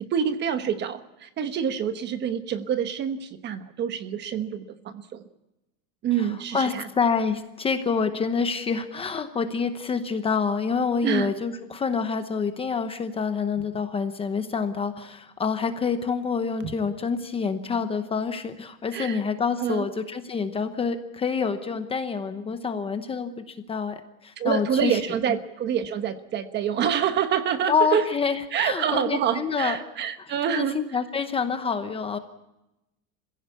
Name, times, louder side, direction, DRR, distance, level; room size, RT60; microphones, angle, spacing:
voice 1, 0.0-5.2 6.0-6.9 11.0-11.3 16.6-16.7 18.9-19.2 19.6-19.9 24.4-28.0 28.5-30.7, right 8 dB, 30° right, 10 dB, 1.1 m, -27 dB
voice 2, 6.5-25.0 27.7-29.8 30.5-32.2, left 5 dB, 15° left, 8 dB, 0.8 m, -27 dB
26.0 x 16.0 x 8.3 m, 0.94 s
cardioid pair, 175°, 36 cm